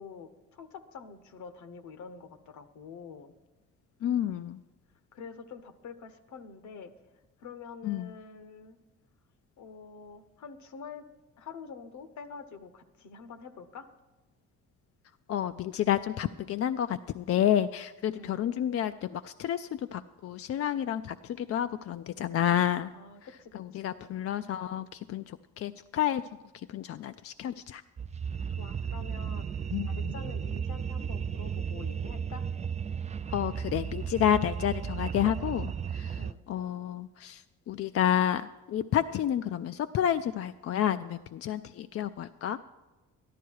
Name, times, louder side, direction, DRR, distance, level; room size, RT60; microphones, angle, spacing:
voice 1, 0.0-3.3 5.1-6.9 7.4-8.8 9.6-11.1 11.4-13.9 18.2-18.5 22.9-24.1 28.6-32.5 36.2-36.4, left 5 dB, 70° left, 10 dB, 1.0 m, -46 dB
voice 2, 4.0-4.6 7.8-8.1 15.3-22.9 23.7-26.2 26.7-27.8 29.7-29.9 33.3-36.2 36.5-37.4 37.7-42.6, left 10 dB, 50° left, 10 dB, 0.4 m, -30 dB
sound 1, 28.0-36.3, right 7 dB, 25° right, 0.3 m, -34 dB
13.5 x 11.5 x 4.7 m, 1.2 s
cardioid pair, 90°, 30 cm